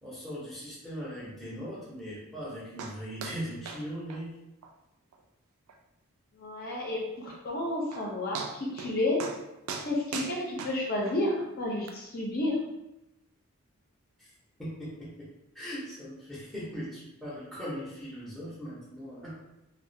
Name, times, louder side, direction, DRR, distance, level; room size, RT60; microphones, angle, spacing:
voice 1, 0.0-4.3 14.2-14.3 14.6-15.3 15.5-19.4, equal, ahead, -8 dB, 0.6 m, -39 dB
sound 1, 2.8-3.0 3.2-3.4 3.7-3.8 4.1-4.2 4.6-4.7 5.1-5.2 5.7-5.8 7.5-7.6 7.9-8.0 8.3-8.9 9.2-9.4 9.7-11.2 11.9-12.0, right 5 dB, 80° right, 0.3 m, -38 dB
voice 2, 6.4-9.2 9.8-12.6, left 1 dB, 45° left, -4 dB, 0.5 m, -31 dB
2.3 x 2.1 x 2.6 m, 0.90 s
head